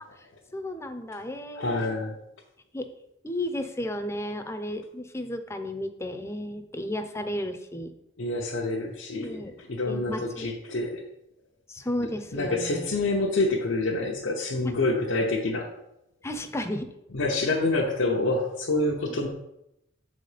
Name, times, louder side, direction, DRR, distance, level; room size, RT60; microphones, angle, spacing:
voice 1, 0.1-1.9 2.7-2.9 3.2-7.9 9.2-9.6 9.9-10.5 11.7-12.9 14.6-14.7 15.5-15.6 16.2-17.0, left 1 dB, 15° left, 7 dB, 0.6 m, -33 dB
voice 2, 1.5-2.2 8.2-11.0 12.3-15.7 17.1-19.3, left 2 dB, 85° left, -2 dB, 0.9 m, -27 dB
7.3 x 4.1 x 4.9 m, 0.84 s
head